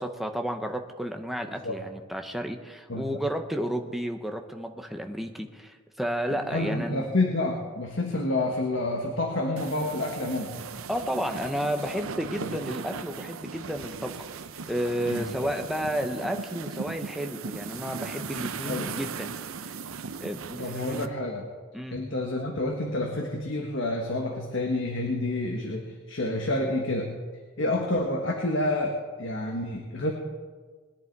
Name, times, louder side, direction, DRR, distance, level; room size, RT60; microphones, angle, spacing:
voice 1, 0.0-7.1 10.9-14.3 14.7-19.3 20.2-21.1 21.7-22.0, equal, ahead, 4 dB, 1.0 m, -32 dB
voice 2, 6.3-10.5 12.4-12.5 15.1-15.2 18.6-19.0 20.6-21.5 21.9-27.1 27.6-30.1, left 2 dB, 60° left, 1 dB, 1.6 m, -29 dB
sound 1, 9.6-21.1, right 5 dB, 80° right, 0.7 m, -38 dB
21.0 x 10.5 x 4.7 m, 1.5 s
head